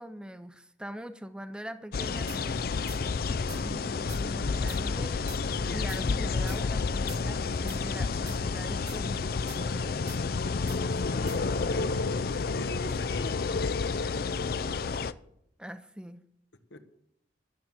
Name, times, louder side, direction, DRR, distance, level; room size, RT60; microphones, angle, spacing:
voice 1, 0.0-2.6 3.5-5.2 5.7-10.3 15.6-16.2, equal, 5° right, 10 dB, 0.6 m, -42 dB
sound 1, 1.9-15.1, left 4 dB, 50° left, 0.4 m, -30 dB
sound 2, 2.3-2.4 2.9-3.0 3.5-3.6 4.1-4.2 4.7-4.8 5.3-5.4 5.9-6.0 6.5-6.6 7.1-7.2 7.7-7.8 8.3-8.4 8.9-9.0 9.5-9.6 10.1-10.2 10.7-10.8 11.3-11.4, right 11 dB, 60° right, 1.0 m, -46 dB
voice 2, 10.9-13.9 16.7-16.8, left 1 dB, 75° left, 9 dB, 1.3 m, -42 dB
12.5 x 7.3 x 8.1 m, 0.74 s
head